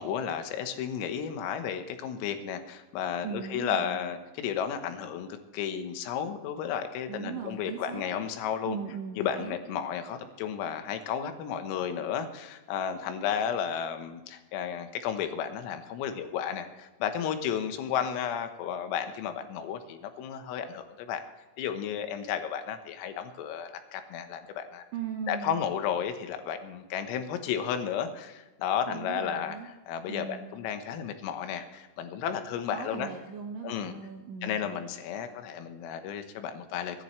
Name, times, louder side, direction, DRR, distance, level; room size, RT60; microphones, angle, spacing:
voice 1, 0.0-8.8 9.2-21.2 21.6-24.8 25.3-29.6 29.9-33.1 33.6-33.9 34.4-37.0, left 8 dB, 85° left, 7 dB, 3.9 m, -33 dB
voice 2, 3.2-4.0 7.1-8.0 8.6-9.6 24.9-25.6 28.9-29.7 30.1-30.5 32.7-34.7, right 6 dB, 80° right, 2 dB, 1.9 m, -39 dB
24.0 x 10.5 x 3.2 m, 1.2 s
omnidirectional pair, 5.9 m